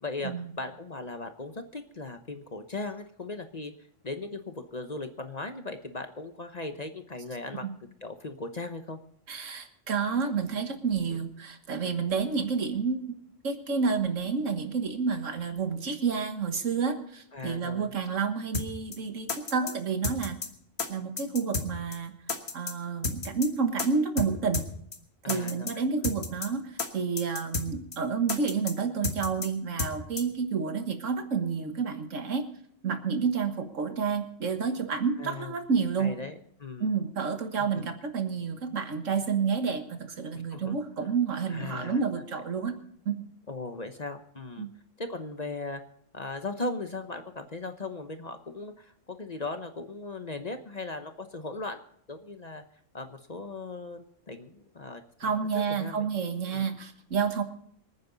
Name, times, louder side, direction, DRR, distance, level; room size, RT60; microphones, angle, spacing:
voice 1, 0.0-3.7 4.0-7.6 8.0-9.0 17.3-17.9 25.2-26.1 35.2-35.5 36.0-36.9 37.6-37.8 40.5-41.1 41.5-42.2 43.5-44.7 45.0-45.8 46.1-51.8 52.1-52.6 52.9-56.1 56.5-56.7, left 3 dB, 35° left, 7 dB, 1.0 m, -38 dB
voice 2, 9.3-13.1 13.4-20.4 20.9-22.1 22.5-24.6 25.3-32.4 32.8-36.1 36.8-42.8 43.1-43.3 44.6-44.7 55.2-57.4, right 5 dB, 75° right, 7 dB, 1.8 m, -29 dB
sound 1, 18.5-18.7 18.9-19.0 19.3-19.7 20.0-20.5 20.8-20.9 21.2-21.7 21.9-22.0 22.3-22.7 23.0-23.5 23.8-23.9 24.2-24.3 24.5-24.7 24.9-25.0 25.3-25.7 26.0-26.5 26.8-26.9 27.2-27.7 27.9-28.0 28.3-28.7 29.0-29.5 29.8-29.9 30.2-30.3, left 4 dB, 55° left, 1.6 m, -31 dB
26.0 x 9.5 x 4.0 m, 0.65 s
omnidirectional pair, 1.3 m